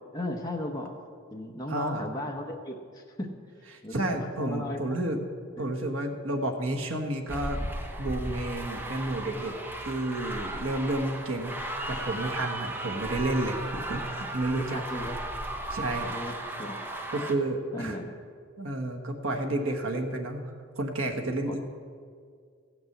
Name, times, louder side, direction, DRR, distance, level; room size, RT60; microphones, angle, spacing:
voice 1, 0.1-0.9 1.3-3.3 3.8-4.8 5.6-5.7 14.6-15.2 16.1-17.0 17.7-18.2 21.5-21.6, left 1 dB, 20° left, 0 dB, 0.9 m, -36 dB
voice 2, 1.7-2.1 3.9-5.2 5.6-7.6 8.0-9.5 9.8-14.8 15.7-16.2 17.1-18.0 18.6-21.6, right 1 dB, 85° right, 3 dB, 1.4 m, -31 dB
sound 1, 7.3-17.3, right 1 dB, 10° right, 0.8 m, -36 dB
15.0 x 6.1 x 8.0 m, 2.1 s
head